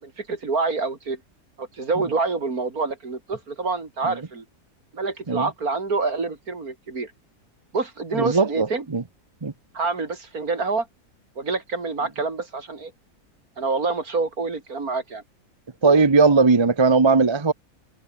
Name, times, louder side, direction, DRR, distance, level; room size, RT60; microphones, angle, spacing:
voice 1, 0.0-1.2 1.6-4.4 4.9-7.1 7.7-8.9 9.7-10.9 11.4-12.9 13.6-15.2, right 4 dB, 65° right, 3.6 m, -27 dB
voice 2, 8.2-9.0 9.4-9.5 15.8-17.5, right 4 dB, 20° right, 0.8 m, -18 dB
omnidirectional pair, 1.7 m